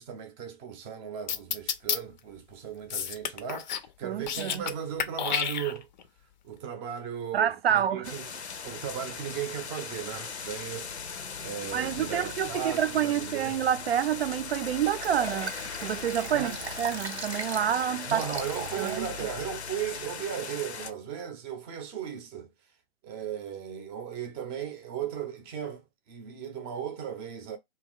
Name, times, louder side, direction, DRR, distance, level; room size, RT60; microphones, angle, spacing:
voice 1, 0.0-5.9 6.4-8.3 8.6-11.1 11.4-13.6 16.3-16.6 18.1-22.5 23.0-27.6, right 8 dB, 15° right, 0.5 m, -36 dB
sound 1, 1.3-2.0 2.9-3.9 4.2-4.7 5.0-6.0, left 8 dB, 45° left, 0.5 m, -30 dB
voice 2, 4.0-4.7 7.3-8.1 11.7-15.5 15.8-16.5 16.8-18.2 18.8-19.1, right 9 dB, 65° right, 0.5 m, -28 dB
sound 2, 8.0-20.9, left 6 dB, 90° left, 0.6 m, -39 dB
Liquid, 14.9-19.0 19.5-19.6, right 4 dB, 90° right, 0.8 m, -39 dB
2.6 x 2.3 x 3.5 m
figure-of-eight pair, 125°, 32 cm